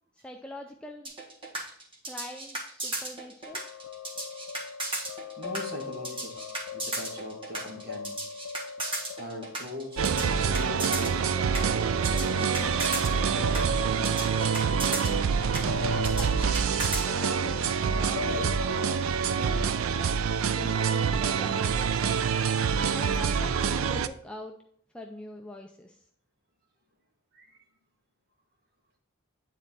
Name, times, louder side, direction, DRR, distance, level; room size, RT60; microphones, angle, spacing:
voice 1, 0.2-1.1 2.0-3.6 15.8-16.7 17.0-18.6 19.3-20.1 20.5-22.4 22.9-24.6 24.9-26.1, left 1 dB, 5° left, 2 dB, 0.4 m, -43 dB
sound 1, 1.0-17.0, right 2 dB, 25° right, 1.5 m, -35 dB
sound 2, 3.5-19.0, left 5 dB, 85° left, 0.3 m, -40 dB
voice 2, 5.4-6.4 6.7-8.1 9.2-11.3 12.1-14.2 27.3-27.6, left 1 dB, 50° right, 1 dB, 1.6 m, -41 dB
sound 3, 10.0-24.1, right 6 dB, 80° right, 0.4 m, -26 dB
9.1 x 4.2 x 4.1 m, 0.65 s
head